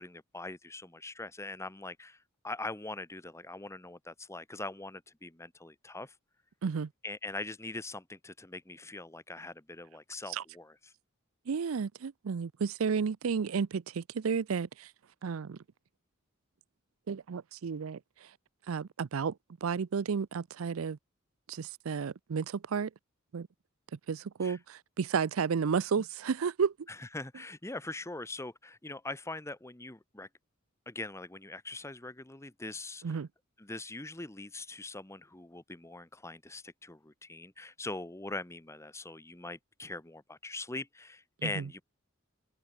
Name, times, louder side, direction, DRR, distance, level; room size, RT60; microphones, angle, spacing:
voice 1, 0.0-2.2 2.4-6.1 7.0-10.9 24.4-24.6 26.9-30.3 30.9-33.2 33.6-41.8, left 2 dB, 15° left, 1.1 m, -42 dB
voice 2, 11.5-14.9 15.2-15.6 17.1-18.0 18.7-19.3 19.6-21.0 21.5-22.9 23.3-23.5 24.1-26.7 33.0-33.3 41.4-41.6, right 6 dB, 85° right, 0.5 m, -32 dB
head